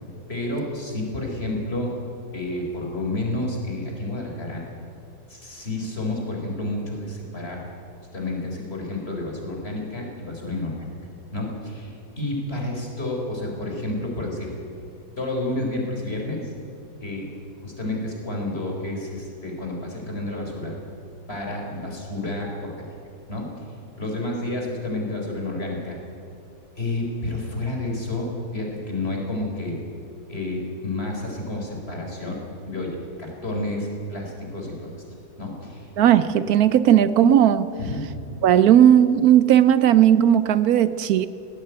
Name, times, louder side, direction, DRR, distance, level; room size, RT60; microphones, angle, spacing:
voice 1, 0.3-2.0 2.3-4.6 5.3-7.6 8.1-10.7 11.3-14.5 15.2-16.5 17.0-17.3 17.6-20.7 21.3-22.9 23.3-23.6 24.0-26.0 26.8-29.8 30.3-35.0 35.4-35.9 37.8-38.0, left 2 dB, 40° left, 0 dB, 4.6 m, -30 dB
voice 2, 36.0-37.7 38.4-41.3, right 10 dB, 75° right, 14 dB, 1.1 m, -16 dB
18.5 x 16.5 x 9.2 m, 2.7 s
omnidirectional pair, 1.6 m